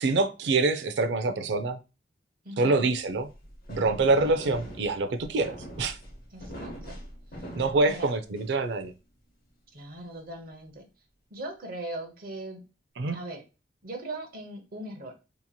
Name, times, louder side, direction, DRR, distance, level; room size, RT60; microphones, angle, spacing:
voice 1, 0.0-1.8 2.6-3.3 3.7-6.0 7.6-8.9 13.0-13.2, right 3 dB, 70° right, 11 dB, 0.4 m, -25 dB
voice 2, 2.4-2.9 6.3-7.0 7.4-7.5 7.8-8.1 9.7-10.9 11.3-12.6 13.1-13.4 13.8-15.1, right 1 dB, 55° right, 4 dB, 0.8 m, -39 dB
sound 1, 3.1-8.7, equal, 55° left, 0.8 m, -42 dB
2.9 x 2.7 x 2.2 m, 0.29 s
head